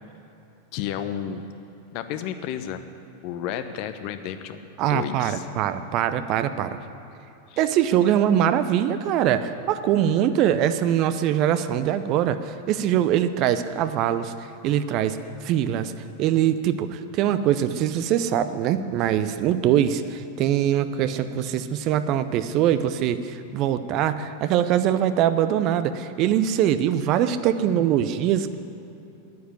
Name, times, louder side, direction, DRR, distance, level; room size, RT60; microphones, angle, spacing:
voice 1, 0.7-1.4 1.9-2.8 3.2-4.6 4.9-5.5 7.5-7.6 8.1-8.2, left 9 dB, 45° left, 9 dB, 0.8 m, -32 dB
voice 2, 4.8-6.8 7.6-15.2 15.4-15.9 16.2-28.5, right 10 dB, 40° right, 11 dB, 0.6 m, -23 dB
10.0 x 9.5 x 9.7 m, 2.9 s
figure-of-eight pair, 90°, 0 cm